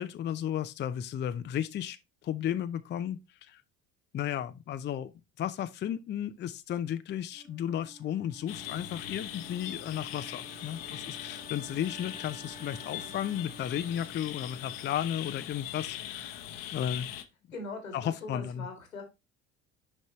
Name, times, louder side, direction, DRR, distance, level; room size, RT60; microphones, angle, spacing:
voice 1, 0.0-2.0 2.2-3.6 4.1-5.1 5.4-16.4 16.7-17.1 17.9-18.7, left 10 dB, 30° left, 0.5 m, -34 dB
Wind instrument woodwind instrument, 7.3-15.3, right 2 dB, 10° right, 0.7 m, -53 dB
sound 1, 8.5-17.2, left 11 dB, 55° left, 0.9 m, -41 dB
voice 2, 17.5-19.0, left 3 dB, 90° left, 2.1 m, -41 dB
6.5 x 5.3 x 3.0 m
figure-of-eight pair, 60°, 39 cm